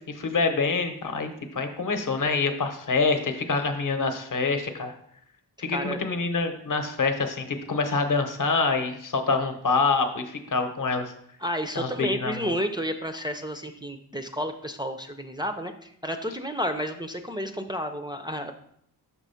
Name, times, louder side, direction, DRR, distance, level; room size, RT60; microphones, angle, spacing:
voice 1, 0.1-4.9 5.6-11.1 11.8-12.5, left 4 dB, 50° left, 7 dB, 0.8 m, -26 dB
voice 2, 5.6-6.0 11.4-18.5, equal, 10° right, 4 dB, 0.4 m, -31 dB
6.2 x 3.1 x 5.6 m, 0.68 s
wide cardioid pair, 120°, 40 cm